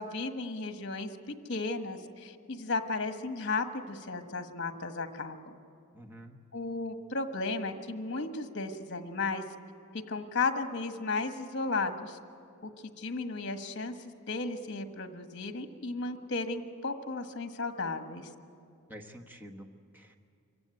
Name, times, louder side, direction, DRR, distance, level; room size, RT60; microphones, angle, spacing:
voice 1, 0.0-5.5 6.5-9.4 10.1-12.2 12.6-12.7 13.0-18.3, left 3 dB, 55° left, 7 dB, 1.4 m, -34 dB
voice 2, 5.9-6.4 18.9-20.2, equal, 10° right, 4 dB, 1.2 m, -48 dB
26.0 x 15.5 x 9.2 m, 2.5 s
head